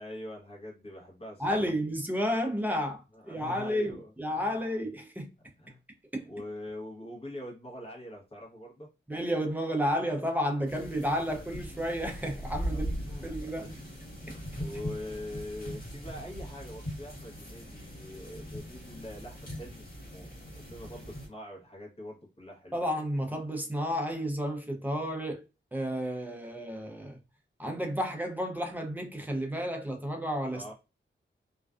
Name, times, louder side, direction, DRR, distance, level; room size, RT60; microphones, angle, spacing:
voice 1, 0.0-1.6 3.1-4.6 5.6-5.8 6.2-8.9 12.6-14.0 14.6-22.8 30.5-30.7, left 1 dB, 30° left, 0.9 m, -44 dB
voice 2, 1.4-5.3 6.1-6.3 9.1-12.9 13.2-13.7 22.7-25.4 25.7-27.2 27.6-30.6, equal, 10° right, 0.5 m, -31 dB
sound 1, 10.7-21.3, equal, 50° left, 1.1 m, -40 dB
2.4 x 2.2 x 2.3 m
wide cardioid pair, 165°, 20 cm